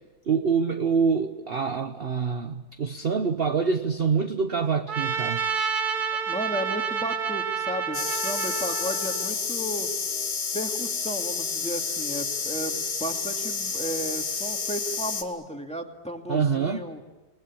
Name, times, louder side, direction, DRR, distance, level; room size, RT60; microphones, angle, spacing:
voice 1, 0.3-5.4 16.3-16.8, right 5 dB, 45° right, 7 dB, 1.0 m, -25 dB
Trumpet, 4.9-9.3, right 6 dB, 75° right, 2.0 m, -29 dB
voice 2, 6.1-9.9 10.5-17.0, equal, 5° left, 3 dB, 2.2 m, -34 dB
sound 1, 7.9-15.2, left 5 dB, 80° left, 2.3 m, -30 dB
29.0 x 20.0 x 8.6 m, 1.1 s
omnidirectional pair, 1.7 m